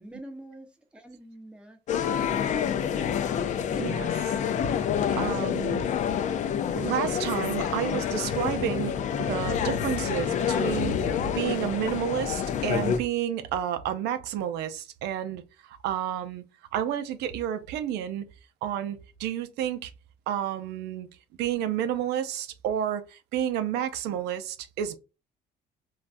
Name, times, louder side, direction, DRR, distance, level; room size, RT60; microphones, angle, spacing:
voice 1, 0.0-1.8 2.1-3.0, right 1 dB, 5° right, 0.8 m, -46 dB
sound 1, 1.9-13.0, left 8 dB, 45° left, 0.4 m, -28 dB
voice 2, 3.7-4.3 5.1-5.8 6.7-10.9 11.3-15.4 15.7-16.4 16.7-18.2 18.6-19.9 20.3-21.1 21.4-25.0, right 10 dB, 85° right, 0.4 m, -30 dB
sound 2, 4.6-5.3 5.6-6.3 7.2-7.3 8.2-8.9 9.3-11.6, left 2 dB, 80° left, 0.7 m, -38 dB
3.3 x 2.3 x 2.5 m
cardioid pair, 110°, 17 cm